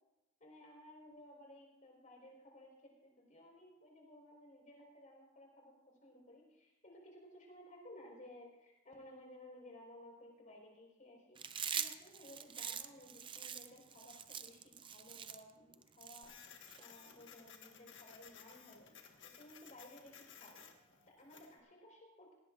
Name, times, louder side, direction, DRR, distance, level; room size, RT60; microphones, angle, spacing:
voice 1, 0.4-11.4 11.7-16.3 16.8-18.9 19.2-20.6 21.1-22.3, left 1 dB, 40° left, -1 dB, 4.7 m, -57 dB
Chewing mastication, 11.4-16.8, right 8 dB, 25° right, 0.5 m, -43 dB
Printer, 16.2-21.6, left 7 dB, 65° left, 1.6 m, -58 dB
18.5 x 17.0 x 2.6 m, 0.92 s
head